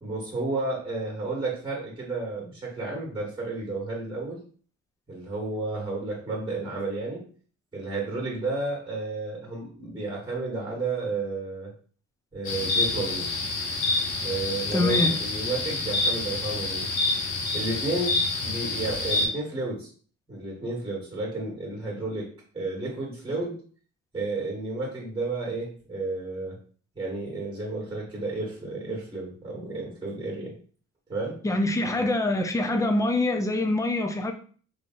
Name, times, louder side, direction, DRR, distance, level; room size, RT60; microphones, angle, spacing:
voice 1, 0.0-4.4 5.1-7.2 7.7-11.7 12.3-13.3 14.2-16.9 17.5-19.9 20.3-22.3 22.5-23.6 24.1-26.6 26.9-30.5 31.1-31.4 32.0-32.1, right 2 dB, 15° right, 1.5 m, -32 dB
sound 1, 12.4-19.3, left 2 dB, 85° left, 0.9 m, -27 dB
voice 2, 14.7-15.1 31.4-34.3, left 2 dB, 10° left, 0.4 m, -25 dB
3.0 x 2.7 x 2.5 m
cardioid pair, 90°, 30 cm